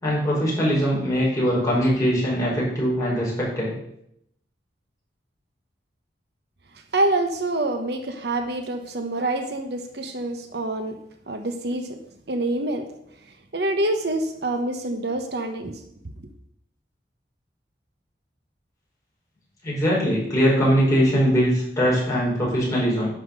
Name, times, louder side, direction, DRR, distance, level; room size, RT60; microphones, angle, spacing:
voice 1, 0.0-3.7 19.6-23.1, equal, 20° left, -6 dB, 4.8 m, -21 dB
voice 2, 6.7-11.0 11.3-12.0 12.3-12.9 13.2-15.8, right 2 dB, 65° right, 6 dB, 1.0 m, -26 dB
11.5 x 5.9 x 6.5 m, 0.76 s
head